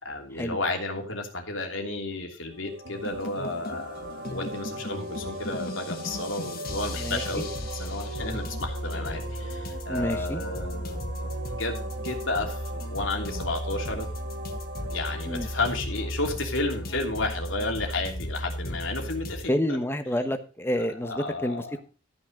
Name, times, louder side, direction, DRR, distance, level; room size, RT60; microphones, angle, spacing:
voice 1, 0.0-11.0 11.5-14.1 14.9-19.8 21.0-21.7, left 2 dB, 70° left, 2 dB, 3.0 m, -32 dB
sound 1, 2.5-17.2, right 1 dB, 60° right, 1.5 m, -40 dB
sound 2, 2.8-19.4, equal, 50° left, 1.6 m, -35 dB
voice 2, 9.9-10.4 15.3-15.5 19.5-21.8, left 1 dB, 10° left, 8 dB, 1.2 m, -29 dB
13.5 x 6.2 x 5.1 m, 0.36 s
head